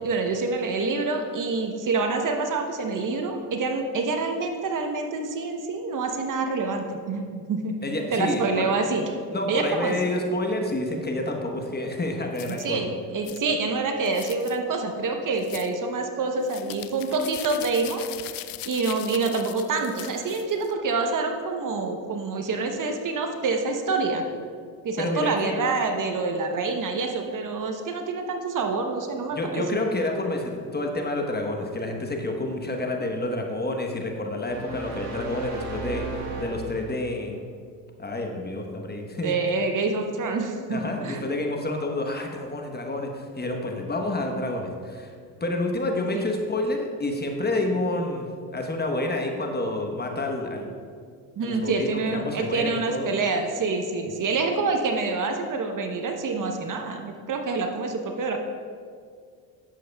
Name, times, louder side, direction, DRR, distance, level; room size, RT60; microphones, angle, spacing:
voice 1, 0.0-7.7 8.1-9.0 9.5-9.9 12.6-18.0 18.7-24.2 24.8-29.6 39.2-41.4 51.4-58.4, right 3 dB, 45° right, 4 dB, 0.9 m, -27 dB
voice 2, 7.8-8.7 9.3-12.8 25.0-25.6 29.3-37.4 38.0-39.3 40.7-45.1 45.4-50.7 51.4-53.1, left 2 dB, 20° left, 2 dB, 1.1 m, -29 dB
sound 1, 12.3-12.7 13.2-13.4 14.0-14.6 15.4-15.7 16.4-20.7, left 14 dB, 50° left, 0.5 m, -40 dB
sound 2, 34.4-37.2, right 3 dB, 90° right, 1.6 m, -35 dB
11.0 x 7.7 x 2.3 m, 2.1 s
supercardioid pair, 70°, 45 cm